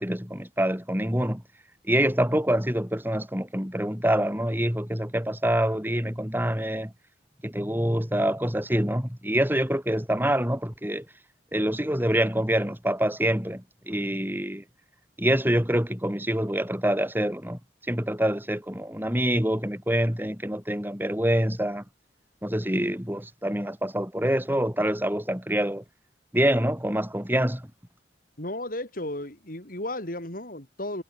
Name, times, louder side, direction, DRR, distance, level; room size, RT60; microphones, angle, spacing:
voice 1, 0.0-1.4 1.8-6.9 7.4-11.0 11.5-14.6 15.2-17.6 17.9-21.8 22.4-25.8 26.3-27.7, right 1 dB, 10° right, 6.8 m, -26 dB
voice 2, 28.4-31.0, left 1 dB, 55° left, 5.6 m, -34 dB
head